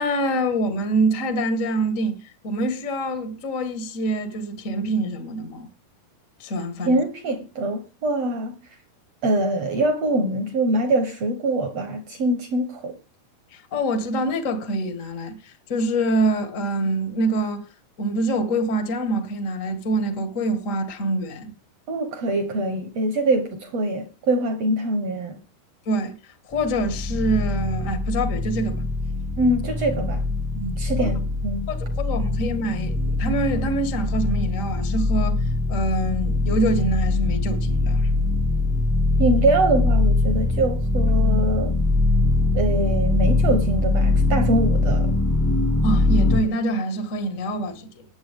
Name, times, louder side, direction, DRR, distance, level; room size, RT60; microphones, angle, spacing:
voice 1, 0.0-2.2 2.4-5.7 6.4-7.0 13.5-17.6 18.0-21.5 25.8-26.2 26.5-28.8 30.5-31.1 31.7-35.4 35.7-38.1 45.8-47.9, right 1 dB, 80° left, 0.7 m, -25 dB
voice 2, 6.8-8.6 9.2-13.0 21.9-25.4 29.4-30.2 30.8-31.7 39.2-41.8 42.5-45.1, right 2 dB, 70° right, 1.5 m, -23 dB
sound 1, 26.5-46.4, left 2 dB, 20° left, 0.4 m, -22 dB
20.0 x 7.4 x 3.7 m
omnidirectional pair, 4.6 m